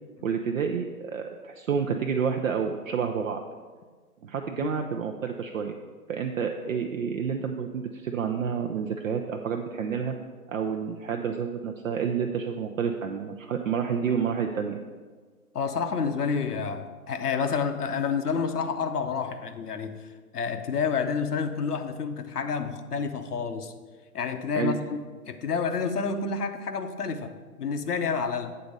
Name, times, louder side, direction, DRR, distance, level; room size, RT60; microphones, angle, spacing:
voice 1, 0.2-3.4 4.2-5.8 6.1-10.2 10.5-14.8 24.6-24.8, right 6 dB, 60° right, 4 dB, 0.6 m, -29 dB
voice 2, 15.5-23.7 24.1-28.5, left 5 dB, 80° left, 7 dB, 0.9 m, -29 dB
7.7 x 4.1 x 6.5 m, 1.5 s
figure-of-eight pair, 140°, 46 cm